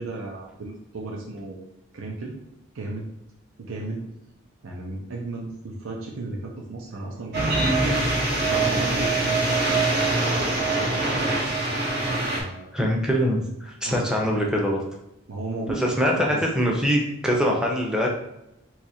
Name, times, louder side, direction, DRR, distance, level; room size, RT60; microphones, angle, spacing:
voice 1, 0.0-1.7 1.9-2.3 2.7-3.1 3.6-4.1 4.6-8.0 8.4-9.9 12.3-12.7 13.9-14.5 15.3-16.4, right 2 dB, 85° right, -1 dB, 0.6 m, -34 dB
sound 1, 7.3-12.4, right 2 dB, 50° right, 0.7 m, -23 dB
voice 2, 12.7-14.8 15.8-16.1 16.5-18.1, equal, 5° right, -1 dB, 0.5 m, -23 dB
2.8 x 2.4 x 4.2 m, 0.86 s
head